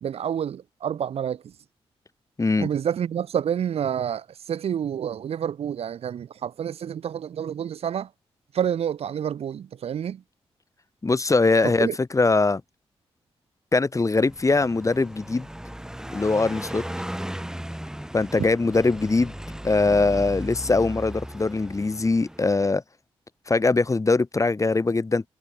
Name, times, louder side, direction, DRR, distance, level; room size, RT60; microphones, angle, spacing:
voice 1, 0.0-1.5 2.6-8.1 8.5-10.2 11.8-12.0, right 9 dB, 75° right, 0.8 m, -28 dB
voice 2, 2.4-2.7 11.0-11.9 12.1-12.6 13.7-15.5 16.1-16.8 18.1-19.3 19.6-22.8 23.5-25.3, left 3 dB, 30° left, 2.0 m, -22 dB
Car passing by, 14.3-22.7, right 1 dB, 5° right, 2.6 m, -36 dB
cardioid pair, 65°, 11 cm